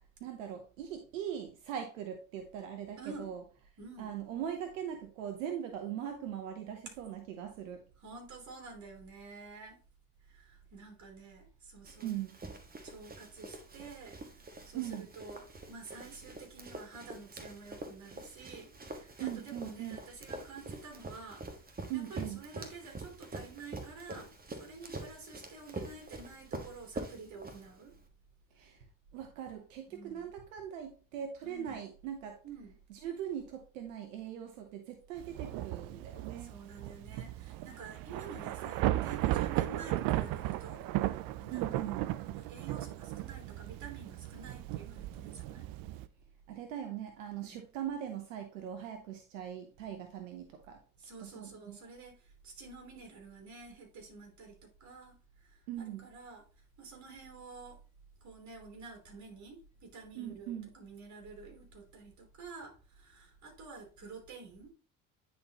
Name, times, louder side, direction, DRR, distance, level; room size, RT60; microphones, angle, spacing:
voice 1, 0.2-3.4 4.0-7.8 12.0-12.4 14.7-15.1 19.2-20.0 21.9-22.4 28.6-28.8 29.1-32.4 32.9-36.5 41.5-42.0 46.5-50.8 51.2-51.8 55.7-56.1 60.2-60.7, right 10 dB, 85° right, 6 dB, 0.8 m, -40 dB
voice 2, 3.0-3.3 3.8-4.1 8.0-9.8 10.2-12.1 12.8-27.9 29.9-30.3 31.4-31.8 32.4-32.8 36.4-45.7 51.0-56.4 56.8-57.8 58.2-64.7, right 4 dB, 45° right, 3 dB, 3.1 m, -50 dB
Run, 11.9-28.0, right 2 dB, 25° right, 1.5 m, -46 dB
Thunder / Rain, 35.2-46.1, right 15 dB, 60° right, 0.5 m, -36 dB
9.4 x 4.3 x 2.9 m, 0.35 s
hypercardioid pair, 65°, 38 cm